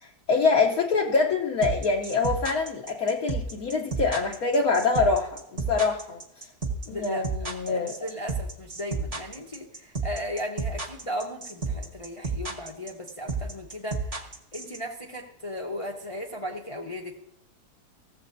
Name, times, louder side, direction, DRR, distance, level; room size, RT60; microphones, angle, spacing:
voice 1, 0.0-6.5 6.9-7.9, left 4 dB, 65° left, -2 dB, 1.3 m, -25 dB
sound 1, 1.6-14.8, right 4 dB, 25° right, 1.2 m, -31 dB
voice 2, 6.9-14.1 14.5-17.2, equal, 25° left, -1 dB, 0.8 m, -36 dB
15.5 x 7.8 x 2.6 m, 0.81 s
omnidirectional pair, 1.7 m